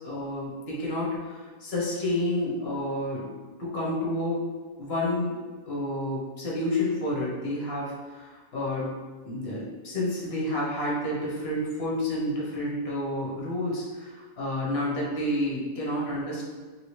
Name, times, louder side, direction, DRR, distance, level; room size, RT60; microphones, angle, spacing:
voice 1, 0.0-3.3 3.6-4.4 4.8-5.4 5.7-8.9 9.2-16.4, left 1 dB, 45° left, -6 dB, 1.0 m, -30 dB
3.2 x 2.8 x 3.1 m, 1.4 s
omnidirectional pair, 1.8 m